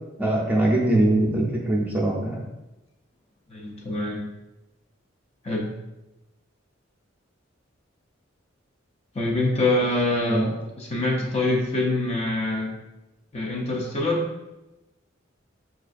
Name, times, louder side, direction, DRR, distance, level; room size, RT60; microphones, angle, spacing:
voice 1, 0.2-2.4 10.3-10.5 11.5-11.6, right 1 dB, 10° right, -3 dB, 0.6 m, -22 dB
voice 2, 3.5-4.2 5.4-5.7 9.1-10.5 10.8-12.7 13.3-14.3, left 2 dB, 35° left, -1 dB, 0.5 m, -25 dB
5.4 x 2.4 x 2.5 m, 0.99 s
head